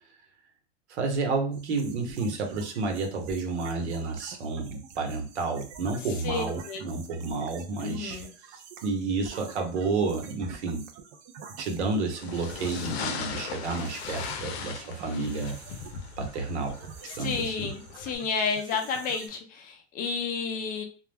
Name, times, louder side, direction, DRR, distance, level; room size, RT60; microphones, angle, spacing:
voice 1, 0.9-8.2 8.5-10.8 11.6-15.6 16.2-16.7 17.2-17.7, right 3 dB, 90° right, 3 dB, 0.9 m, -30 dB
sound 1, 1.5-19.3, right 6 dB, 40° right, 0.4 m, -47 dB
voice 2, 6.2-6.8 7.8-8.3 17.1-20.8, left 5 dB, 25° left, 5 dB, 0.4 m, -31 dB
sound 2, 12.2-18.2, left 6 dB, 70° left, 0.6 m, -38 dB
2.3 x 2.0 x 3.3 m, 0.38 s
supercardioid pair, 135°, 33 cm